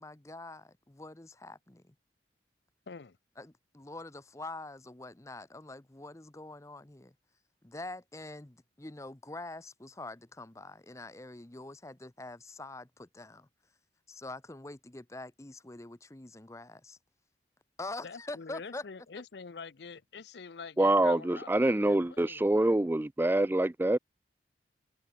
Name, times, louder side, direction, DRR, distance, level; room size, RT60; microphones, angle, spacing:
voice 1, 0.0-1.9 3.4-7.1 7.6-13.5 14.1-17.0 17.8-18.8, left 2 dB, 15° left, 0.8 m, -45 dB
voice 2, 2.9-3.2 18.0-22.8, left 5 dB, 70° left, 0.6 m, -46 dB
voice 3, 20.8-24.0, right 1 dB, 10° right, 0.3 m, -26 dB
head